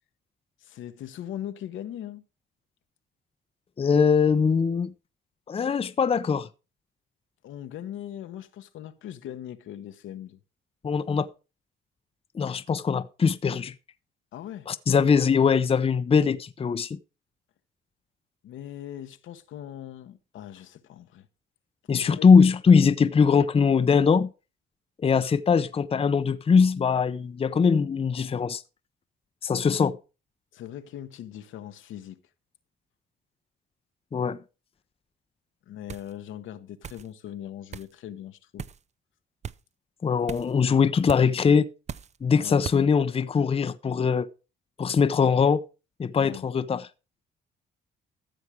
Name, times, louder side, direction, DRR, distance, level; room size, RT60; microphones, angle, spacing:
voice 1, 0.6-2.2 7.4-10.4 14.3-14.7 18.4-21.3 21.9-22.3 30.5-32.2 35.7-38.7 42.4-42.6 46.2-46.5, left 11 dB, 80° left, 1.1 m, -40 dB
voice 2, 3.8-4.9 5.5-6.5 10.8-11.3 12.3-13.7 14.7-17.0 21.9-24.3 25.0-28.6 29.4-30.0 34.1-34.4 40.0-41.7 42.2-44.3 44.8-45.6 46.0-46.9, left 6 dB, 30° left, 0.6 m, -21 dB
sound 1, 35.9-36.1 36.8-37.1 37.7-37.9 38.6-38.8 39.4-39.6 40.3-40.5 41.1-41.3 41.9-42.2 42.6-42.8, right 7 dB, 35° right, 0.5 m, -37 dB
14.0 x 7.2 x 4.8 m
cardioid pair, 90°, 20 cm